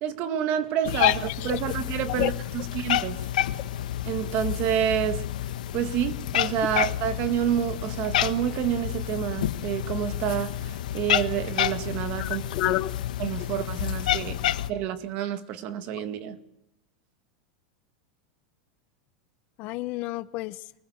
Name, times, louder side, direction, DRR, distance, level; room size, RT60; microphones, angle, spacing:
voice 1, 0.0-1.2 1.4-2.3 2.7-3.2 4.0-5.2 5.7-12.7 13.2-14.4 14.7-16.4, right 10 dB, 40° right, 1.9 m, -28 dB
Cat, 0.8-14.7, left 12 dB, 90° left, 1.2 m, -29 dB
voice 2, 0.9-1.6 2.1-2.3 12.2-12.9 19.6-20.6, left 18 dB, 35° left, 0.8 m, -29 dB
24.0 x 20.5 x 8.0 m
supercardioid pair, 165°, 4 cm